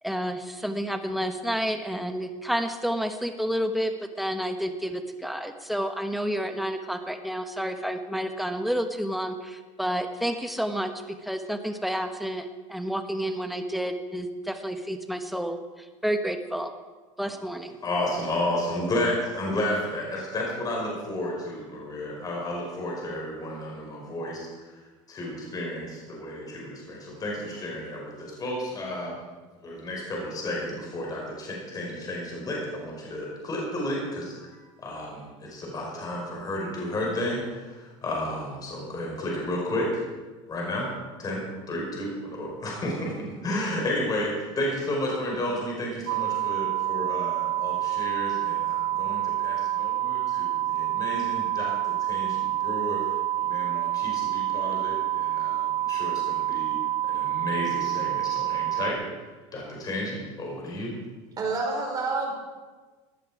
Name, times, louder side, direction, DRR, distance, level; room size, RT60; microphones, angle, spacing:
voice 1, 0.0-3.9 4.2-16.7 17.2-17.8, equal, ahead, 6 dB, 1.2 m, -30 dB
voice 2, 17.8-24.7 25.1-29.2 29.6-40.0 40.5-40.9 41.2-56.8 57.0-59.0 59.5-60.9, left 1 dB, 25° left, -2 dB, 4.9 m, -32 dB
sound 1, 46.1-58.9, right 13 dB, 80° right, 1.0 m, -27 dB
voice 3, 61.4-62.3, right 3 dB, 25° right, 0 dB, 4.7 m, -28 dB
16.5 x 11.0 x 4.9 m, 1.3 s
supercardioid pair, 125°, 16 cm